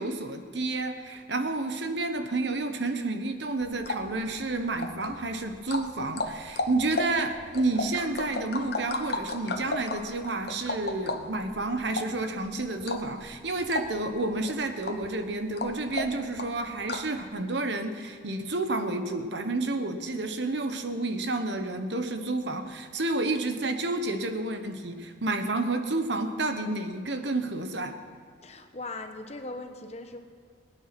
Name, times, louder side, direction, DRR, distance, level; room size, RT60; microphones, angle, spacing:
voice 1, 0.0-28.0, right 2 dB, 70° right, 7 dB, 1.2 m, -30 dB
sound 1, 3.6-17.2, left 2 dB, 60° left, 1.0 m, -36 dB
voice 2, 28.4-30.2, left 2 dB, 35° left, 6 dB, 1.1 m, -39 dB
20.0 x 9.3 x 6.0 m, 2.1 s
head